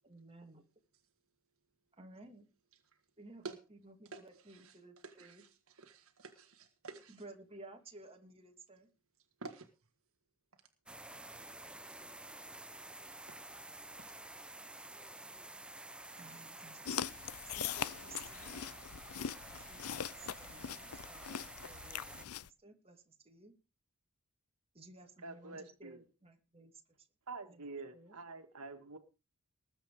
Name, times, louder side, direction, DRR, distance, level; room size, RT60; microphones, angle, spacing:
voice 1, 0.0-0.6 2.0-2.5 3.2-5.4 7.1-8.9 16.2-17.0 17.5-19.1 19.6-23.5 24.7-26.7 27.0-27.1 27.5-27.6 27.9-28.2, right 2 dB, 25° right, 2.6 m, -56 dB
voice 2, 5.0-5.5 5.8-7.2 9.4-9.7, right 4 dB, 65° right, 1.8 m, -49 dB
sound 1, 10.9-22.3, right 2 dB, 5° right, 0.7 m, -50 dB
Apple Chewing, 16.9-22.5, left 9 dB, 75° left, 0.6 m, -42 dB
voice 3, 25.2-26.0 27.3-29.0, right 3 dB, 90° right, 2.1 m, -47 dB
20.0 x 8.1 x 5.1 m
head